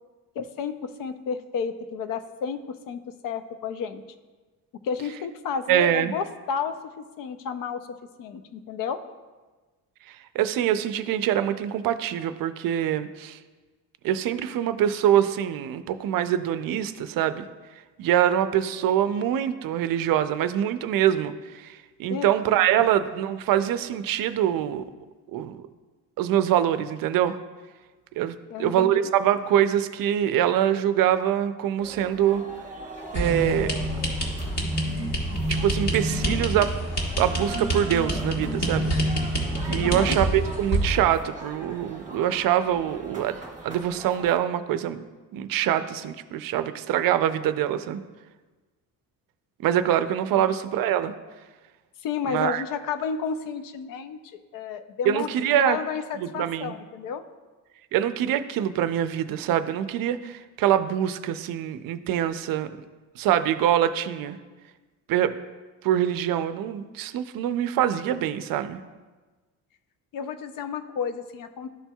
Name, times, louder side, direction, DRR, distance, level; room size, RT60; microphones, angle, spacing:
voice 1, 0.4-2.6 2.9-4.0 4.8-9.0 22.1-22.3 28.5-29.1 39.8-40.2 50.3-50.5 52.0-57.2 70.1-71.7, left 6 dB, 60° left, 10 dB, 0.5 m, -32 dB
voice 2, 5.7-6.1 10.1-13.4 14.0-17.5 18.0-24.8 25.3-25.6 26.2-27.4 28.2-32.4 33.1-33.8 35.5-36.7 37.2-38.9 39.7-43.4 43.6-45.0 45.3-48.0 49.6-51.1 52.3-52.6 55.1-55.8 56.2-56.8 57.9-62.7 63.2-64.4 65.1-65.4 65.8-68.8, right 10 dB, 65° right, 11 dB, 0.5 m, -24 dB
sound 1, 31.8-44.4, right 2 dB, 20° right, 1.2 m, -42 dB
sound 2, 33.1-41.0, right 1 dB, 45° left, 1.4 m, -27 dB
12.5 x 4.3 x 2.3 m, 1.3 s
cardioid pair, 160°, 37 cm